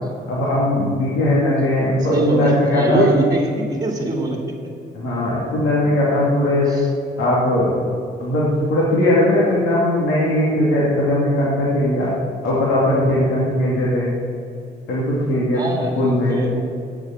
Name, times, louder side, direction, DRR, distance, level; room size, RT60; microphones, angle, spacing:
voice 1, 0.3-3.1 4.9-6.7 7.2-7.7 8.2-12.1 12.4-14.1 14.9-15.6 16.0-16.4, left 1 dB, 85° left, -6 dB, 2.5 m, -19 dB
voice 2, 2.1-4.6 5.8-6.0 6.7-6.8 15.5-16.6, right 1 dB, 20° right, 1 dB, 2.3 m, -22 dB
8.8 x 7.0 x 7.8 m, 2.3 s
cardioid pair, 90°, 20 cm